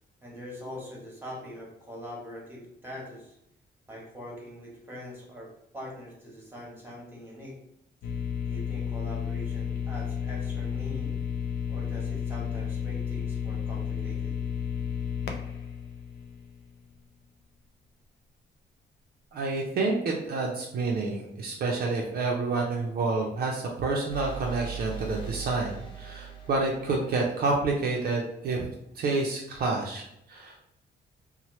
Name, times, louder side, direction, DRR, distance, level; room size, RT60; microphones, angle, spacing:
voice 1, 0.2-3.3 3.9-7.6 8.5-11.2 11.7-14.3, equal, 10° right, -3 dB, 0.9 m, -43 dB
sound 1, 8.0-16.9, left 7 dB, 80° left, 0.4 m, -32 dB
voice 2, 19.3-28.7 29.0-30.6, right 3 dB, 60° right, 0 dB, 0.4 m, -29 dB
sound 2, 24.1-27.8, right 8 dB, 25° left, 0.6 m, -40 dB
2.9 x 2.0 x 3.0 m, 0.79 s
cardioid pair, 150°, 18 cm